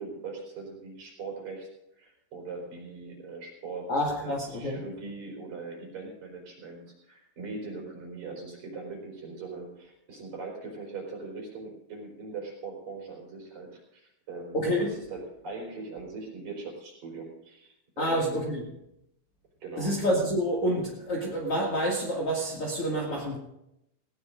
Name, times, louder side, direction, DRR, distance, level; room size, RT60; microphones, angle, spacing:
voice 1, 0.0-1.7 2.0-18.5 19.6-20.0, right 3 dB, 40° right, -1 dB, 5.1 m, -40 dB
voice 2, 3.9-4.8 14.5-14.9 18.0-18.6 19.8-23.4, equal, 40° left, -2 dB, 2.3 m, -28 dB
19.5 x 18.5 x 2.6 m, 0.83 s
omnidirectional pair, 5.1 m